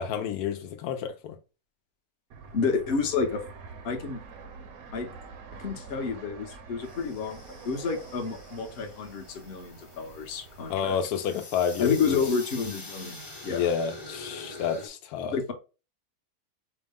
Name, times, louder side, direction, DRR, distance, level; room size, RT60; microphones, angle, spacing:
voice 1, 0.0-1.4 10.7-12.2 13.5-15.4, left 7 dB, 80° left, 1.1 m, -29 dB
Fixed-wing aircraft airplane, 2.3-11.0, right 5 dB, 70° right, 1.2 m, -47 dB
voice 2, 2.5-3.4 3.8-4.2 4.9-5.1 5.6-7.4 7.6-11.0 11.8-13.6 15.2-15.5, left 5 dB, 45° left, 0.9 m, -30 dB
sound 1, 6.8-14.9, left 2 dB, 25° left, 0.6 m, -45 dB
5.1 x 2.1 x 3.5 m
omnidirectional pair, 1.6 m